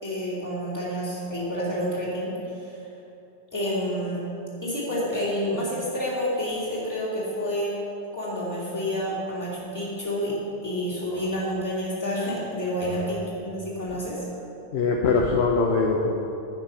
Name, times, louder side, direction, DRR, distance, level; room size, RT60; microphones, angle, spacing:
voice 1, 0.0-2.3 2.6-2.7 3.5-4.2 4.6-7.7 8.1-10.3 10.6-14.2, equal, 15° left, -8 dB, 2.9 m, -29 dB
voice 2, 11.0-11.3 14.7-16.1, left 4 dB, 75° left, 0 dB, 1.1 m, -23 dB
10.5 x 8.8 x 5.6 m, 2.7 s
omnidirectional pair, 1.1 m